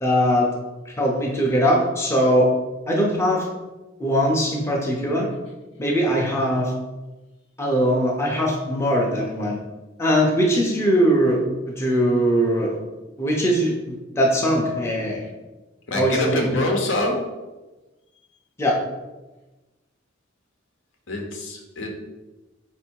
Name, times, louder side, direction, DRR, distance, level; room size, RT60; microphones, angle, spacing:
voice 1, 0.0-0.5 0.9-2.5 2.9-3.5 4.0-5.3 5.8-6.7 7.6-9.6 10.0-12.8 13.2-15.3 16.0-16.5 18.6-18.8, equal, 15° left, -2 dB, 0.6 m, -21 dB
voice 2, 15.9-17.2 21.1-21.9, left 1 dB, 70° left, 1 dB, 0.8 m, -25 dB
4.3 x 2.6 x 4.5 m, 1.1 s
head